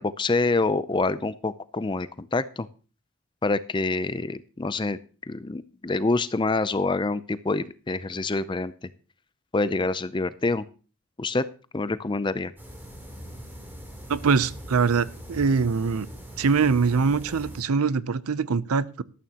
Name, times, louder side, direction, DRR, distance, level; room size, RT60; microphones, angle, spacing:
voice 1, 0.0-2.7 3.4-5.0 5.3-8.7 9.5-10.6 11.2-11.4 11.7-12.5, left 3 dB, 20° left, 0.4 m, -26 dB
sound 1, 12.6-17.6, equal, 10° right, 3.2 m, -41 dB
voice 2, 14.1-16.1 16.4-19.0, right 5 dB, 85° right, 0.6 m, -23 dB
13.0 x 13.0 x 2.9 m
head